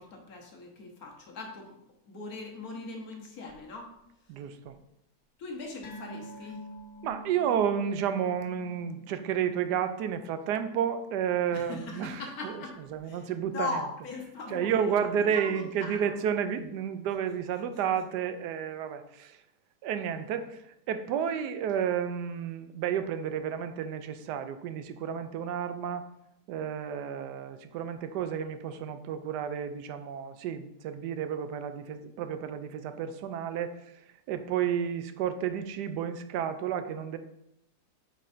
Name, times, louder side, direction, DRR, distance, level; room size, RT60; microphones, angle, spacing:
voice 1, 0.0-1.8 2.0-3.9 5.4-6.6 11.5-16.1, left 3 dB, 65° left, 1 dB, 1.5 m, -40 dB
voice 2, 4.3-4.7 7.0-12.6 12.9-13.7 14.5-19.4 19.8-20.6 20.9-26.1 26.5-33.7 34.3-37.2, right 8 dB, 90° right, 10 dB, 1.2 m, -31 dB
sound 1, 5.8-12.6 12.9-13.1 13.5-13.6, equal, 85° left, 1.7 m, -48 dB
8.5 x 5.4 x 2.6 m, 0.81 s
omnidirectional pair, 1.7 m